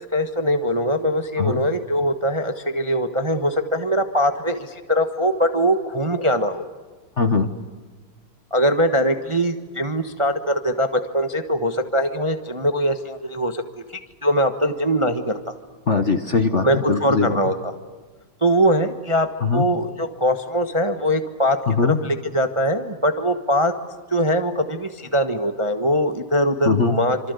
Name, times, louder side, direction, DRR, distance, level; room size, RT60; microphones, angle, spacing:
voice 1, 0.0-6.7 8.5-13.6 14.2-15.4 16.6-17.7 18.4-19.3 19.5-21.6 21.8-23.7 24.1-27.3, equal, 20° right, 7 dB, 1.0 m, -22 dB
voice 2, 7.2-7.5 15.9-17.4 19.4-19.7 21.7-22.0 26.7-26.9, left 4 dB, 40° left, 9 dB, 1.3 m, -20 dB
26.5 x 26.5 x 8.3 m, 1.4 s
omnidirectional pair, 2.4 m